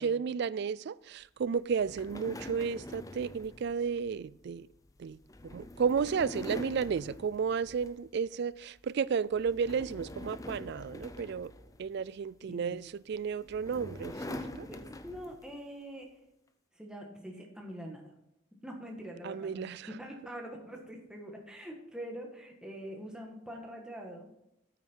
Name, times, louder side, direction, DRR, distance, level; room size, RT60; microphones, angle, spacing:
voice 1, 0.0-4.7 5.0-5.2 5.4-11.5 11.8-14.7 19.2-19.9, right 6 dB, 50° right, 0.3 m, -33 dB
sound 1, 1.7-8.2 8.6-8.9 9.3-12.3 13.1-15.6, left 1 dB, 15° left, 0.5 m, -45 dB
voice 2, 14.7-16.1 16.7-18.1 18.6-24.3, equal, 5° right, 1.5 m, -44 dB
9.0 x 8.9 x 4.6 m
head